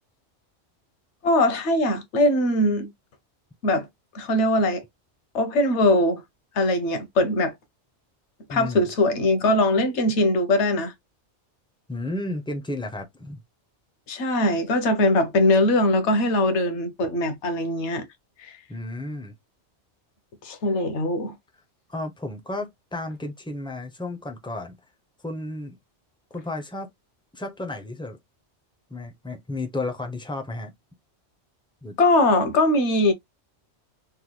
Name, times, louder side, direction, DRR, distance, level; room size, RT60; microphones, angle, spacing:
voice 1, 1.2-2.9 3.6-3.9 4.1-4.8 5.3-6.2 6.6-7.5 8.5-10.9 14.1-18.1 18.4-18.5 20.4-21.3 32.0-33.1, left 1 dB, 70° left, 1.1 m, -21 dB
voice 2, 8.5-8.9 11.9-13.4 18.7-19.3 21.9-24.8 25.2-25.8 26.3-26.9 27.3-28.2 28.9-30.7 31.8-32.0, left 2 dB, 10° left, 0.3 m, -33 dB
3.6 x 2.2 x 3.0 m
omnidirectional pair, 1.2 m